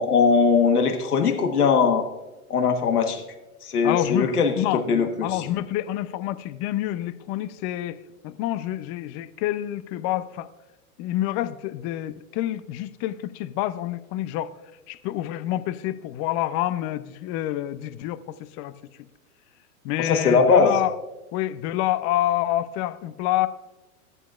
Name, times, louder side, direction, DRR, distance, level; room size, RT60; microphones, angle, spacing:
voice 1, 0.0-2.1 2.5-3.2 3.6-5.4 20.0-20.7, left 5 dB, 85° left, 5 dB, 1.4 m, -20 dB
voice 2, 3.8-4.3 4.5-8.0 8.2-10.5 11.0-14.5 14.9-18.8 19.8-21.0 21.3-23.5, left 14 dB, 40° left, 15 dB, 0.7 m, -27 dB
15.5 x 11.0 x 2.4 m, 1.1 s
hypercardioid pair, 110°, 44 cm